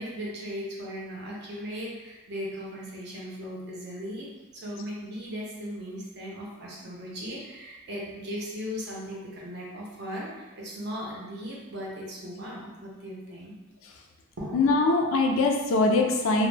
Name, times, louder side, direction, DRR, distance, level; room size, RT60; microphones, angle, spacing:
voice 1, 0.0-13.6 14.4-14.6, equal, 50° right, -4 dB, 0.6 m, -37 dB
voice 2, 14.5-16.5, left 3 dB, 70° left, 2 dB, 0.3 m, -22 dB
2.1 x 2.0 x 3.2 m, 1.1 s
head